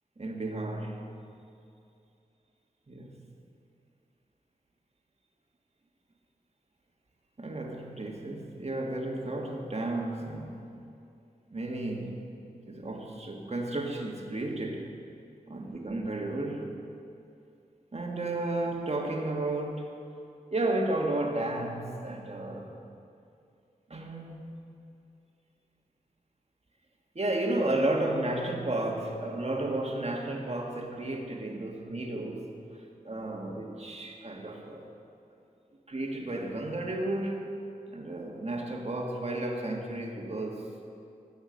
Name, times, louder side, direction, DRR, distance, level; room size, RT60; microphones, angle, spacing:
voice 1, 0.2-1.1 2.9-3.2 7.4-10.6 11.5-12.2 12.7-14.9 15.5-16.8 17.9-19.9 20.5-22.7 23.9-24.7 27.2-32.5 33.1-34.9 35.9-37.4 37.9-40.7, right 2 dB, 45° right, 0 dB, 1.8 m, -33 dB
16.5 x 6.3 x 6.5 m, 2.6 s
wide cardioid pair, 55°, 16 cm